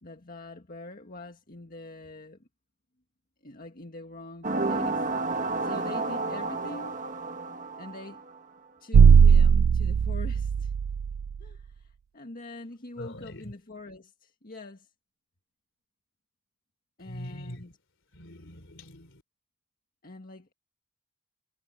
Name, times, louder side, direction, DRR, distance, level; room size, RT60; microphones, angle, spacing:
voice 1, 0.0-2.5 3.4-7.0 7.8-8.2 8.8-10.7 11.4-14.9 17.0-17.7 20.0-20.5, left 2 dB, 45° left, 1.8 m, -44 dB
sound 1, 4.4-8.4, right 3 dB, 35° right, 1.3 m, -31 dB
sound 2, 8.9-11.4, right 6 dB, 85° right, 0.4 m, -18 dB
voice 2, 13.0-13.5 17.0-17.7 18.1-19.2, equal, 60° left, 3.5 m, -43 dB
head